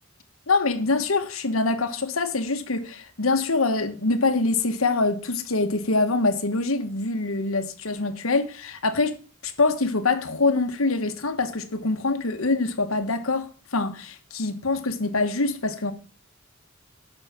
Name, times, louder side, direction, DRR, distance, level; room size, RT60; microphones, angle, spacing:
voice 1, 0.5-9.2 9.4-15.9, left 3 dB, 90° left, 1.4 m, -24 dB
8.9 x 6.3 x 7.3 m
head